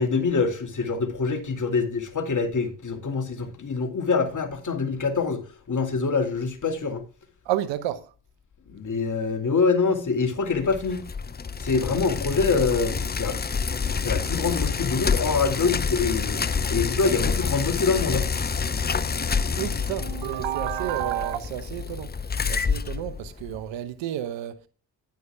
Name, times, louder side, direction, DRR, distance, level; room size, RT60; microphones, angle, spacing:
voice 1, 0.0-5.4 5.7-7.0 8.7-11.1 11.6-13.4 14.0-16.4 16.7-18.3, left 4 dB, 45° left, 2.6 m, -25 dB
voice 2, 7.4-8.1 19.5-22.1 22.4-24.7, right 12 dB, 80° right, 1.0 m, -30 dB
Bicycle, 10.5-23.7, left 5 dB, 20° left, 0.7 m, -28 dB
10.5 x 9.6 x 3.5 m
supercardioid pair, 55°, 43 cm